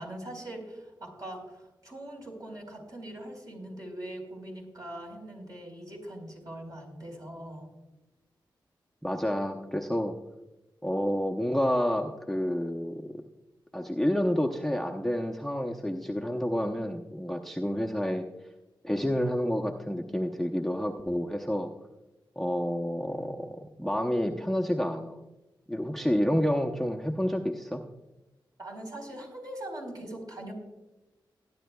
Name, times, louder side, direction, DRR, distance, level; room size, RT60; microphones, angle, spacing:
voice 1, 0.0-7.7 28.6-30.5, right 1 dB, 45° right, 0 dB, 4.3 m, -41 dB
voice 2, 9.0-10.1 10.8-13.2 13.7-18.3 18.8-21.7 22.4-25.2 25.7-27.9, equal, 5° left, 2 dB, 0.8 m, -29 dB
19.0 x 10.0 x 2.3 m, 1.0 s
cardioid pair, 55°, 9 cm